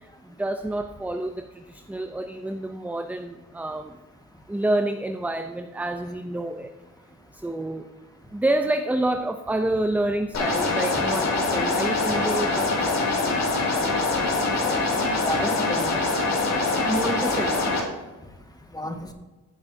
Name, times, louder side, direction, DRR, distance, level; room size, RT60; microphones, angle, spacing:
voice 1, 0.4-3.9 4.5-6.7 7.4-7.8 8.3-13.0 16.9-17.6, right 1 dB, 5° right, 7 dB, 0.6 m, -28 dB
sound 1, 10.3-17.8, left 3 dB, 60° left, 2.5 m, -24 dB
voice 2, 13.9-14.3 14.5-14.7 15.0-16.1 18.7-19.1, left 1 dB, 10° left, 4 dB, 1.6 m, -32 dB
15.0 x 7.0 x 2.8 m, 1.2 s
cardioid pair, 90°, 30 cm